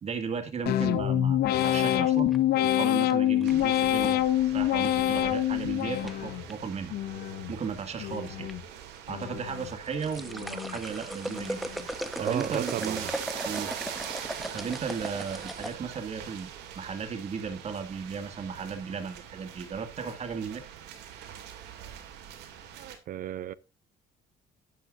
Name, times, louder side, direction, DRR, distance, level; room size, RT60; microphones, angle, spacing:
voice 1, 0.0-2.3 2.6-7.0 7.5-8.5 9.1-11.7 12.2-13.1 13.4-13.7 14.5-16.5 16.8-20.6, right 6 dB, 40° right, 2.2 m, -35 dB
sound 1, 0.7-6.5 6.9-7.5 8.0-8.6 9.1-9.7 10.2-10.8 11.3-11.8, left 12 dB, 70° left, 0.9 m, -26 dB
sound 2, 1.7-3.8 5.3-5.6 6.1-6.5 7.4-8.0 8.3-8.5 9.0-9.1 9.7-15.8, equal, ahead, 1.1 m, -38 dB
sound 3, 3.4-23.0, right 9 dB, 90° right, 2.6 m, -43 dB
voice 2, 12.2-13.1 23.1-23.5, right 12 dB, 55° right, 0.5 m, -33 dB
12.0 x 9.4 x 2.6 m
cardioid pair, 110°, 17 cm